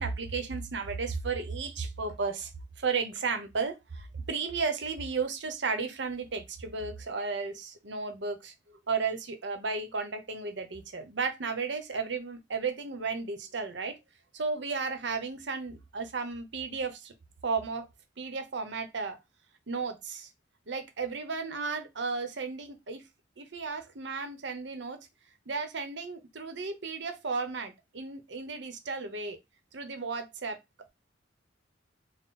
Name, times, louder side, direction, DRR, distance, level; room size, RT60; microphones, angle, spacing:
voice 1, 0.0-2.5 2.8-14.0 14.3-17.1 17.4-17.9 18.2-19.2 19.7-20.3 20.7-23.0 23.4-25.0 25.5-29.4 29.7-30.6, right 4 dB, 70° right, 0.8 m, -34 dB
3.7 x 2.1 x 4.1 m
head